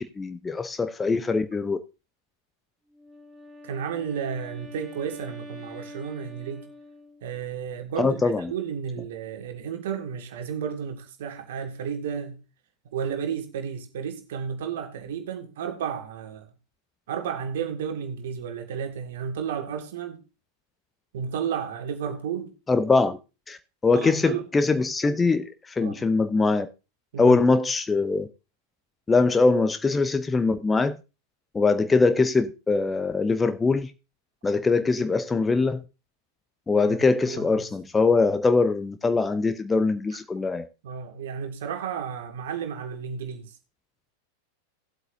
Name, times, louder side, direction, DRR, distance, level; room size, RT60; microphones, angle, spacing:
voice 1, 0.0-1.8 8.0-8.5 22.7-23.2 23.5-26.7 27.2-28.3 29.1-31.0 31.5-33.9 34.4-35.8 36.7-40.7, left 3 dB, 15° left, 0.6 m, -22 dB
Wind instrument woodwind instrument, 2.9-7.4, left 1 dB, 10° right, 2.5 m, -45 dB
voice 2, 3.6-6.7 7.2-12.4 12.9-16.5 17.1-20.2 21.1-22.5 23.9-24.5 25.8-26.0 27.1-27.4 36.9-37.7 40.8-43.5, right 7 dB, 55° right, 1.9 m, -32 dB
17.5 x 8.1 x 2.7 m
figure-of-eight pair, 90°, 0 cm